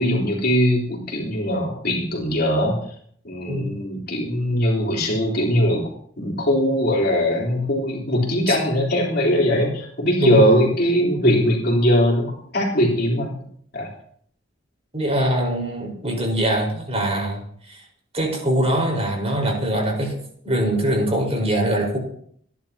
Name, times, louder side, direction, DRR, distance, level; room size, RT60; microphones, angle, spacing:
voice 1, 0.0-2.8 3.2-5.8 6.2-13.3 13.7-13.9, equal, 55° left, -2 dB, 3.8 m, -20 dB
voice 2, 14.9-17.4 17.7-17.8 18.1-20.1 20.4-22.0, right 1 dB, 35° right, 1 dB, 4.8 m, -22 dB
26.5 x 11.0 x 2.9 m, 0.62 s
head